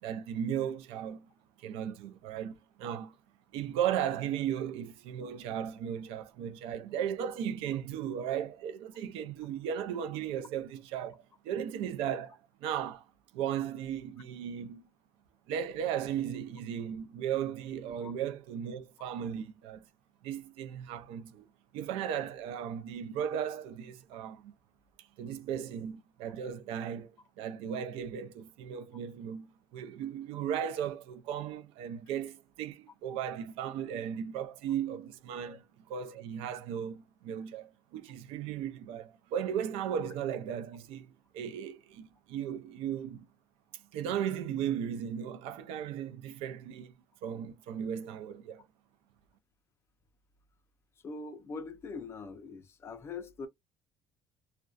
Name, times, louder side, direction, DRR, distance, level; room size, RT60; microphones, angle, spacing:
voice 1, 0.0-1.3 1.6-3.2 3.5-13.0 13.3-14.9 15.5-19.8 20.2-21.5 21.7-24.5 25.0-41.1 41.3-43.3 43.7-46.9 47.2-48.6, right 9 dB, 80° right, 0.4 m, -36 dB
voice 2, 51.0-53.5, left 4 dB, 25° left, 0.4 m, -42 dB
2.3 x 2.1 x 2.4 m
cardioid pair, 150°, 10 cm